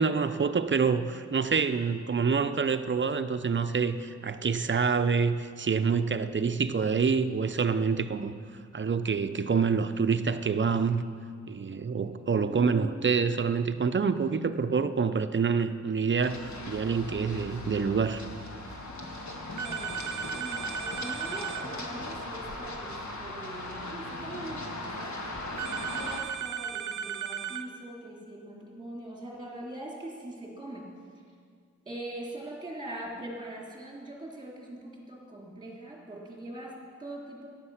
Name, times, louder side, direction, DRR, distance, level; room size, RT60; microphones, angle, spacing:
voice 1, 0.0-8.3 8.7-11.0 11.5-18.2, right 5 dB, 40° right, 10 dB, 0.6 m, -27 dB
Run, 16.2-26.2, left 1 dB, 70° left, 1.8 m, -39 dB
voice 2, 19.3-31.3 31.9-37.5, right 1 dB, 15° right, -3 dB, 3.7 m, -42 dB
sound 1, 19.6-21.7 25.6-27.7, right 7 dB, 80° right, 0.6 m, -35 dB
14.5 x 10.5 x 5.8 m, 2.1 s
wide cardioid pair, 95°, 29 cm